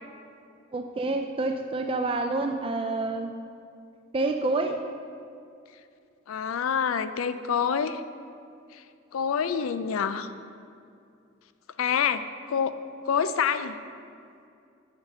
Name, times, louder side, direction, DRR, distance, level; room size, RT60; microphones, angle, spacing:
voice 1, 0.7-3.3 4.1-4.8, right 2 dB, 25° right, 5 dB, 0.3 m, -28 dB
voice 2, 6.3-8.0 8.7-8.8 9.1-10.3 11.8-12.8 13.1-13.8, left 7 dB, 80° left, 12 dB, 0.4 m, -27 dB
7.1 x 5.3 x 6.7 m, 2.5 s
head